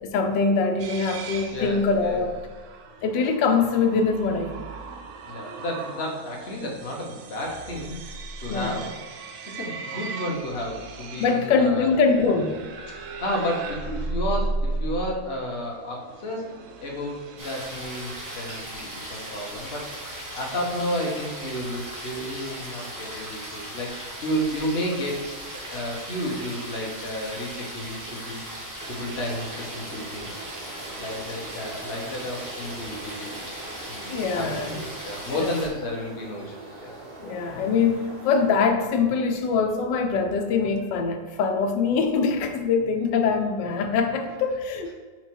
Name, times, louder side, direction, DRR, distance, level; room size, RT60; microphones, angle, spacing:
voice 1, 0.0-2.3 3.0-4.7 8.5-8.8 11.2-12.6 34.1-34.8 35.4-35.5 37.2-44.9, left 5 dB, 85° left, 6 dB, 1.3 m, -23 dB
sound 1, 0.8-18.6, right 3 dB, 70° right, 0.7 m, -36 dB
voice 2, 1.5-2.2 3.6-3.7 5.3-8.0 8.4-12.0 12.9-16.5 16.8-25.2 25.7-28.4 28.9-33.4 33.9-36.5 36.8-36.9, equal, 40° left, -1 dB, 1.1 m, -32 dB
sound 2, 17.4-35.7, right 1 dB, 15° right, 0.9 m, -38 dB
sound 3, 28.8-38.6, right 2 dB, 30° right, 1.9 m, -43 dB
4.7 x 4.5 x 4.4 m, 1.5 s
omnidirectional pair, 1.9 m